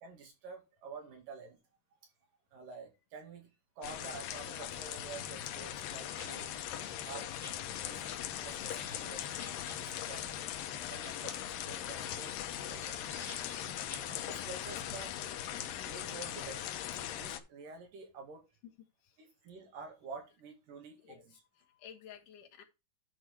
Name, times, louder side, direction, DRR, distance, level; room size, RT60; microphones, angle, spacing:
voice 1, 0.0-1.6 2.5-3.5 3.8-6.6 7.0-7.3 7.8-9.4 9.7-10.4 10.9-13.1 14.0-15.2 15.8-16.7 17.2-18.4 19.2-21.4, right 4 dB, 75° right, 4.0 m, -49 dB
sound 1, 3.8-17.4, left 11 dB, 90° left, 2.6 m, -40 dB
sound 2, 6.0-14.9, left 3 dB, 25° left, 2.3 m, -54 dB
voice 2, 13.8-14.1 15.7-15.9 19.0-19.2 21.0-22.6, left 9 dB, 75° left, 2.9 m, -55 dB
10.5 x 4.7 x 4.5 m
omnidirectional pair, 3.9 m